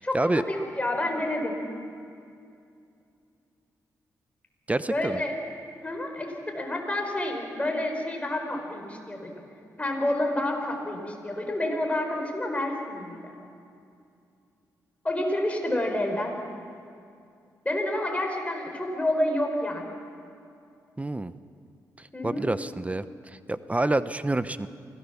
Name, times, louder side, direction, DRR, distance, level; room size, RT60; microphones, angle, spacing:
voice 1, 0.0-1.6 4.9-5.4 5.8-9.4 9.8-13.3 15.0-16.4 17.6-19.8 22.1-22.4, left 1 dB, 20° left, 2 dB, 5.0 m, -29 dB
voice 2, 4.7-5.2 21.0-21.3 22.0-24.7, right 2 dB, 20° right, 13 dB, 0.8 m, -28 dB
24.5 x 17.5 x 7.2 m, 2.5 s
cardioid pair, 60°, 7 cm